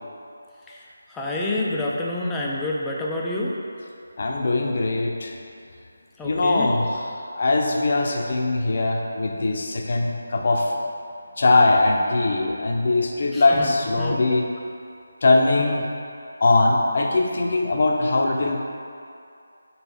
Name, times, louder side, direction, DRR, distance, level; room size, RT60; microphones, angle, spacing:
voice 1, 1.1-3.5 6.2-6.7 13.3-13.7 14.0-14.2 15.6-15.8, left 2 dB, 5° left, -4 dB, 0.5 m, -28 dB
voice 2, 4.2-5.3 6.2-7.1 7.3-10.7 11.4-14.4 15.2-15.9 16.4-18.6, left 2 dB, 50° left, 1 dB, 0.7 m, -21 dB
5.6 x 4.2 x 4.2 m, 2.4 s
figure-of-eight pair, 160°, 0 cm